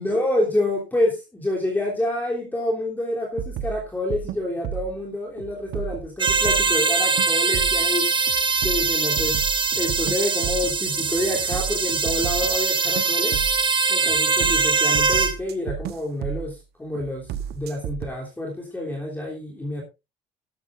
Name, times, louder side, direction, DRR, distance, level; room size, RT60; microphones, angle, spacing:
voice 1, 0.0-8.2 8.6-13.4 13.9-19.8, left 1 dB, 10° left, -2 dB, 3.2 m, -28 dB
sound 1, 3.4-5.0 5.4-6.8 7.2-7.9 8.3-12.7 13.0-13.7 14.1-16.6 17.0-18.1, right 9 dB, 70° right, 1.0 m, -33 dB
sound 2, 6.2-15.3, right 4 dB, 30° right, 1.3 m, -22 dB
13.0 x 12.0 x 2.6 m, 0.25 s
cardioid pair, 110°, 17 cm